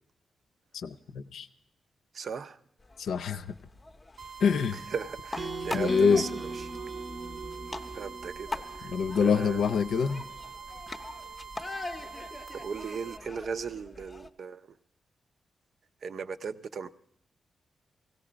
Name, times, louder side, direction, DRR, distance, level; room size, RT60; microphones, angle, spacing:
voice 1, 0.7-1.5 3.0-3.5 4.4-4.8 5.7-6.2 8.9-10.2, left 6 dB, 80° left, 11 dB, 0.6 m, -25 dB
voice 2, 2.1-2.6 4.7-6.8 7.9-8.5 8.7-9.7 12.5-14.7 16.0-16.9, right 5 dB, 55° right, 12 dB, 0.5 m, -37 dB
sound 1, 2.8-14.3, left 2 dB, 20° left, 0.6 m, -43 dB
sound 2, 4.2-13.2, right 6 dB, 90° right, 0.9 m, -45 dB
sound 3, 5.4-9.5, right 2 dB, 20° right, 0.7 m, -39 dB
17.0 x 17.0 x 5.0 m, 0.73 s
wide cardioid pair, 130°, 0 cm